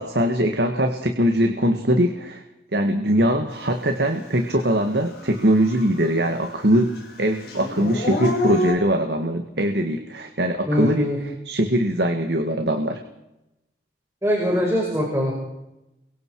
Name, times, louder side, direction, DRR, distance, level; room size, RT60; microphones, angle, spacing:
voice 1, 0.0-2.4 2.7-13.0, equal, 70° right, 5 dB, 1.9 m, -22 dB
Dog / Siren, 4.4-4.5 4.9-6.4 6.6-8.7, left 1 dB, 60° left, 5.2 m, -27 dB
voice 2, 10.7-11.2 14.2-15.3, equal, 15° right, -2 dB, 5.7 m, -22 dB
29.5 x 23.5 x 4.8 m, 0.92 s
head